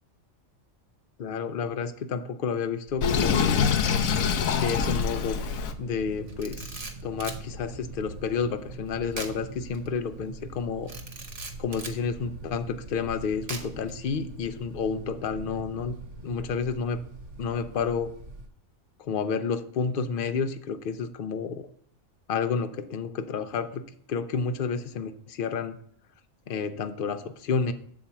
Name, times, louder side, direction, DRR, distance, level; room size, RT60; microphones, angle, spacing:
voice 1, 1.2-3.6 4.5-5.4 5.8-10.9 11.6-17.0 17.4-18.1 19.0-21.7 22.3-23.8 24.1-25.8 26.5-27.7, left 5 dB, 55° left, 10 dB, 0.6 m, -30 dB
sound 1, 2.9-18.5, right 2 dB, 65° right, 1.2 m, -43 dB
Sink (filling or washing), 3.0-5.7, left 6 dB, 90° left, 1.1 m, -24 dB
Camera, 6.3-7.4 9.1-9.4 9.7-9.9 10.9-12.0 13.5-13.9, right 3 dB, 30° right, 0.8 m, -39 dB
7.4 x 4.3 x 6.9 m, 0.63 s
omnidirectional pair, 1.4 m